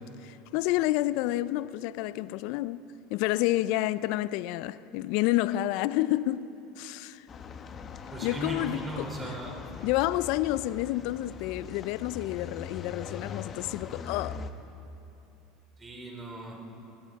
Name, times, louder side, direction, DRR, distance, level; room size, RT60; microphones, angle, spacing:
voice 1, 0.2-6.5 6.8-7.3 8.2-9.1 9.8-14.4, left 16 dB, 65° left, 0.4 m, -29 dB
sound 1, 7.3-14.5, left 5 dB, 35° left, 1.0 m, -41 dB
voice 2, 8.1-9.6 15.8-16.6, right 1 dB, 25° right, 3.2 m, -38 dB
26.5 x 13.5 x 3.6 m
hypercardioid pair, 85°, 0 cm